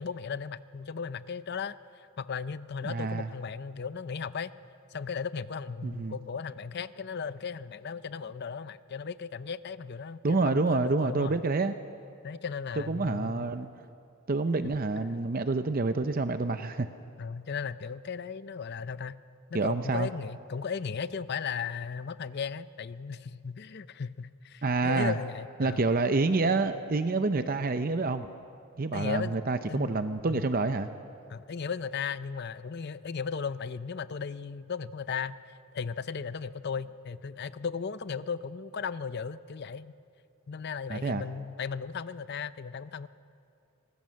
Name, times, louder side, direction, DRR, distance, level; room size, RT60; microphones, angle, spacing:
voice 1, 0.0-1.8 2.2-4.5 4.9-11.4 12.2-13.5 17.2-19.2 19.5-25.9 28.9-29.4 29.7-30.0 30.3-30.5 31.3-35.3 35.7-39.9 40.5-43.1, left 6 dB, 50° left, 15 dB, 0.5 m, -36 dB
voice 2, 2.8-3.3 5.8-6.1 10.2-11.7 12.9-13.7 14.3-16.9 19.5-20.1 24.6-25.2 25.6-28.3 28.8-30.9 40.9-41.3, right 3 dB, 40° right, 9 dB, 0.6 m, -28 dB
24.5 x 20.5 x 6.4 m, 2.5 s
head